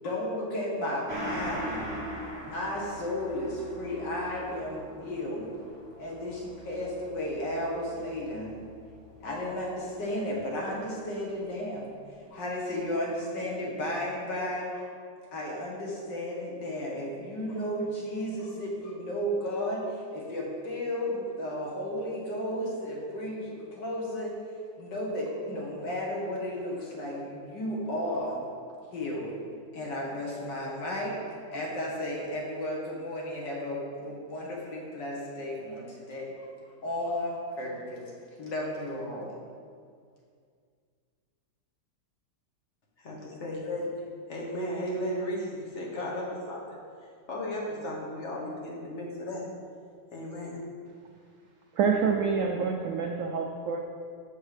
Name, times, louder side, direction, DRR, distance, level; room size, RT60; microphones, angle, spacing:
voice 1, 0.0-5.5 6.0-8.6 9.2-11.9 12.3-14.8 15.3-24.3 24.8-28.4 28.9-29.4 29.7-31.2 31.5-36.5 36.8-38.0 38.4-39.4, left 1 dB, 80° left, 1.9 m, -33 dB
Gong, 1.1-10.0 10.4-10.5, equal, 10° right, 1.5 m, -41 dB
voice 2, 43.0-43.8 44.3-46.8 47.3-49.5 50.1-50.6, equal, 45° left, 1.4 m, -35 dB
voice 3, 51.7-53.8, right 5 dB, 75° right, 0.7 m, -27 dB
7.2 x 4.5 x 4.9 m
omnidirectional pair, 1.9 m